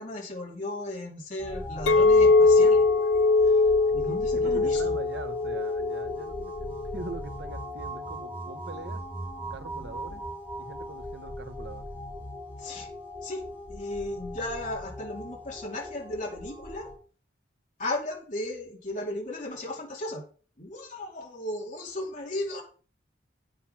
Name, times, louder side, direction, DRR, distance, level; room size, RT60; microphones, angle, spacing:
voice 1, 0.0-3.1 3.4-3.6 3.9-4.9 12.6-12.9 13.2-13.4 13.7-16.9 17.8-20.2 20.6-22.6, left 1 dB, 40° left, -2 dB, 2.8 m, -35 dB
sound 1, 1.4-17.0, left 1 dB, 10° right, 3.2 m, -39 dB
Chink clink, 1.9-7.1, left 3 dB, 85° left, 0.5 m, -22 dB
voice 2, 3.9-9.0 9.5-10.2 10.6-11.9, right 2 dB, 65° right, 9 dB, 1.1 m, -42 dB
8.9 x 6.7 x 5.8 m, 0.40 s
head